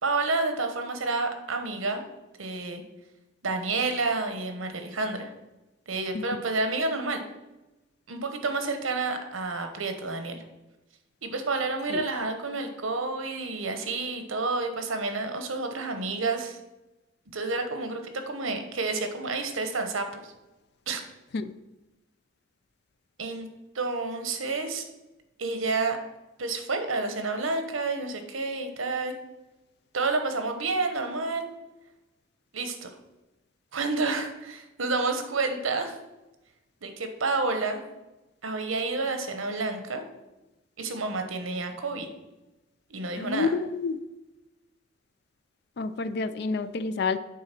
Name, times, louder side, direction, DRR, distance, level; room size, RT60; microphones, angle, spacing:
voice 1, 0.0-2.0 2.4-2.8 3.4-5.3 5.9-7.2 8.1-10.4 11.2-16.6 17.3-20.3 20.9-21.0 23.2-23.5 23.7-24.8 25.4-26.0 26.4-29.1 29.9-31.5 32.5-32.9 33.7-35.9 36.8-37.8 38.4-40.0 40.8-42.1 42.9-43.5, right 3 dB, 85° right, 6 dB, 1.0 m, -29 dB
voice 2, 6.1-6.5 11.9-12.0 21.3-21.5 43.2-44.0 45.8-47.2, left 4 dB, 55° left, 13 dB, 0.4 m, -29 dB
8.6 x 3.8 x 5.9 m, 1.0 s
head